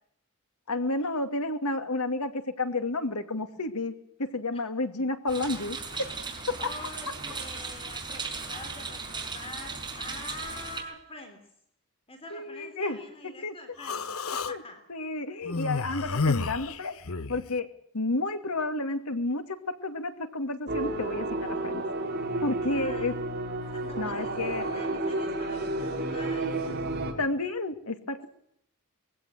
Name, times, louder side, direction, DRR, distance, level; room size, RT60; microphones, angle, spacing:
voice 1, 0.7-2.3 2.6-3.9 4.2-5.8 6.5-6.7 12.3-13.0 13.4-13.5 14.5-14.6 14.9-16.9 17.3-17.7 17.9-21.8 22.4-23.1 24.0-24.7 27.2-28.3, left 2 dB, 85° left, 8 dB, 2.6 m, -31 dB
Rain during the Night Ambiance, 5.3-10.8, right 4 dB, 20° right, 5.4 m, -37 dB
voice 2, 6.6-11.4 12.1-14.1 14.3-14.8 22.7-23.2 23.7-26.8, left 2 dB, 25° left, 6 dB, 3.4 m, -45 dB
Human voice, 13.8-14.5 15.5-17.4, left 4 dB, 70° left, 1.1 m, -30 dB
sound 1, 20.7-27.1, right 2 dB, 45° right, 4.5 m, -31 dB
22.0 x 16.0 x 9.3 m, 0.72 s
head